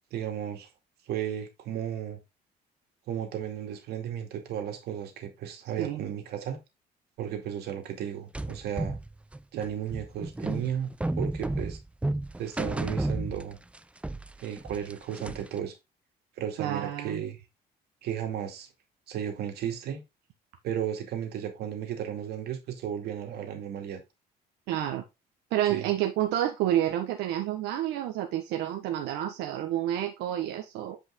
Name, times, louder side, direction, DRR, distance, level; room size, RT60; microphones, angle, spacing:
voice 1, 0.1-0.7 1.1-2.2 3.1-6.6 7.2-9.0 9.5-11.8 12.4-13.6 14.4-15.8 16.4-17.4 18.0-18.7 19.1-20.0 20.6-24.0 25.6-25.9, right 9 dB, 75° right, 2.4 m, -34 dB
sound 1, 8.3-13.8 14.0-15.6, right 2 dB, 5° right, 0.5 m, -32 dB
voice 2, 16.6-17.2 24.7-25.0 25.5-31.0, right 12 dB, 90° right, 1.2 m, -29 dB
8.4 x 5.1 x 3.7 m
cardioid pair, 110°, 17 cm